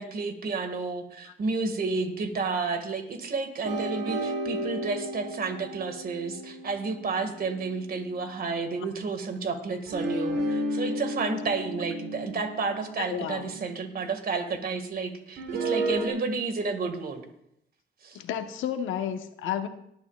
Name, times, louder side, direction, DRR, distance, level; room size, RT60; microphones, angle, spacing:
voice 1, 0.0-17.2 18.0-18.2, right 4 dB, 50° right, 6 dB, 1.9 m, -31 dB
sound 1, 3.7-8.2 9.9-14.0 15.4-16.1, right 1 dB, 90° right, 3.4 m, -33 dB
voice 2, 13.0-13.5 18.1-19.7, left 9 dB, 80° left, 7 dB, 1.2 m, -31 dB
18.5 x 11.5 x 2.4 m, 0.74 s
cardioid pair, 90°, 20 cm